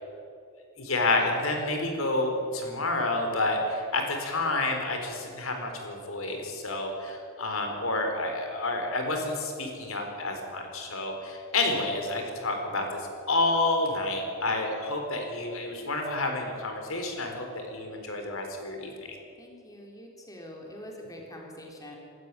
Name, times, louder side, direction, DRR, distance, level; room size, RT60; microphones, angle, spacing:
voice 1, 0.8-12.8 13.3-18.9, left 2 dB, 70° left, 3 dB, 4.3 m, -29 dB
voice 2, 19.4-22.0, left 1 dB, 15° left, 0 dB, 3.6 m, -44 dB
26.0 x 13.5 x 9.9 m, 2.5 s
head